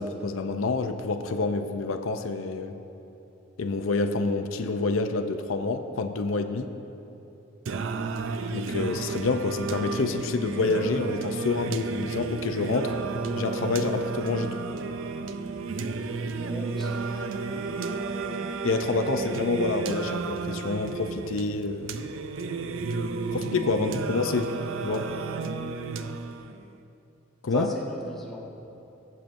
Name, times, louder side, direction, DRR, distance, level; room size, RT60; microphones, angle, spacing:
voice 1, 0.0-2.7 3.6-6.7 8.5-12.9 13.3-14.6 18.6-21.9 23.3-24.5 24.8-25.1 27.4-27.7, left 3 dB, 85° left, 7 dB, 0.6 m, -28 dB
Singing, 7.7-26.7, right 4 dB, 75° right, 0.4 m, -32 dB
voice 2, 16.4-17.5 23.7-23.8 27.5-28.5, equal, ahead, -4 dB, 1.1 m, -37 dB
22.0 x 7.6 x 2.6 m, 2.9 s
head